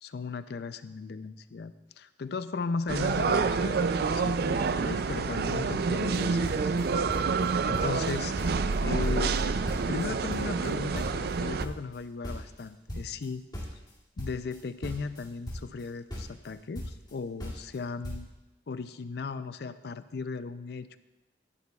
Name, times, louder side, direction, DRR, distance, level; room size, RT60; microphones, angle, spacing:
voice 1, 0.0-8.3 8.8-9.4 9.9-13.4 14.2-18.3 18.7-21.0, left 4 dB, 60° left, 13 dB, 0.4 m, -37 dB
sound 1, 2.9-11.7, right 4 dB, 60° right, 0.4 m, -28 dB
sound 2, 5.9-6.2 6.4-7.5 7.7-8.1 8.4-10.0 10.3-13.3 13.5-15.8 16.1-17.1 17.4-17.8 18.0-18.2, equal, 25° left, 2.4 m, -38 dB
14.0 x 10.5 x 2.3 m, 1.1 s
head